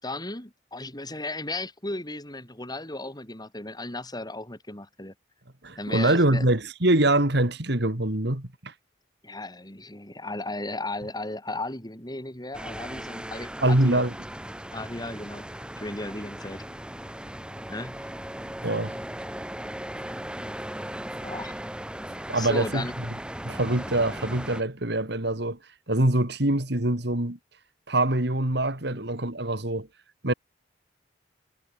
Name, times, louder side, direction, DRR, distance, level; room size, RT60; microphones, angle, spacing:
voice 1, 0.0-5.1 5.8-6.5 9.2-14.1 14.7-15.5 15.8-16.6 17.7-18.0 21.2-21.6 22.3-23.0 28.9-29.0, left 2 dB, 20° left, 6.7 m, -35 dB
voice 2, 5.6-8.7 13.6-14.1 18.6-19.0 22.3-22.9 23.4-25.6 25.9-27.4 27.9-29.9 30.2-30.3, right 1 dB, 65° right, 3.1 m, -24 dB
sound 1, 12.5-24.6, right 1 dB, 5° right, 1.8 m, -38 dB
head